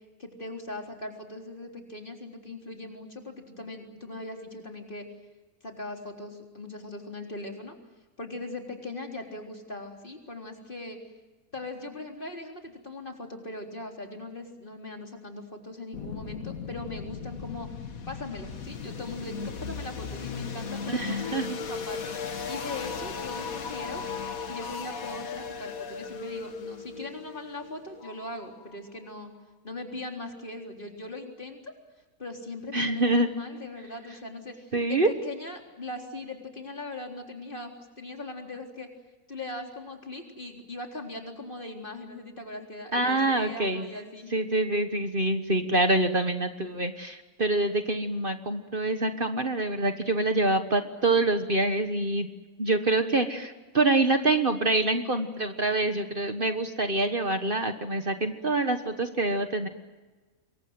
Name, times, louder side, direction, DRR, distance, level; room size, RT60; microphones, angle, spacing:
voice 1, 0.2-5.1 5.6-7.8 8.2-11.0 11.5-17.7 18.1-24.1 24.5-29.3 29.6-31.7 32.2-38.9 39.3-44.3, left 2 dB, 40° left, 2 dB, 4.0 m, -40 dB
sound 1, 15.9-28.8, left 5 dB, 90° left, 1.9 m, -37 dB
voice 2, 20.9-21.6 32.7-33.3 34.7-35.1 42.9-43.8 44.3-52.3 52.6-59.7, right 2 dB, 40° right, 7 dB, 1.6 m, -26 dB
27.0 x 23.0 x 7.7 m, 1.3 s
omnidirectional pair, 1.4 m